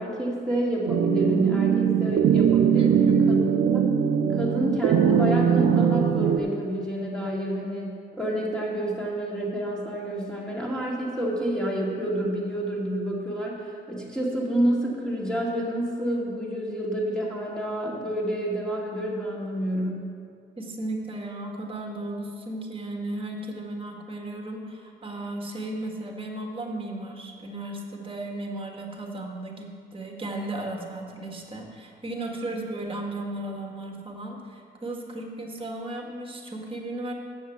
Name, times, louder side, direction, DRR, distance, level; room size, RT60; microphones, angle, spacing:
voice 1, 0.0-2.9 3.3-3.4 3.7-3.8 4.3-20.0 32.4-32.5, right 1 dB, 5° left, -3 dB, 2.4 m, -29 dB
sound 1, 0.9-6.4, right 7 dB, 80° right, 0.6 m, -21 dB
voice 2, 2.8-3.8 20.6-37.1, right 1 dB, 25° right, 2 dB, 1.7 m, -35 dB
7.8 x 7.1 x 7.4 m, 2.4 s
cardioid pair, 90°, 20 cm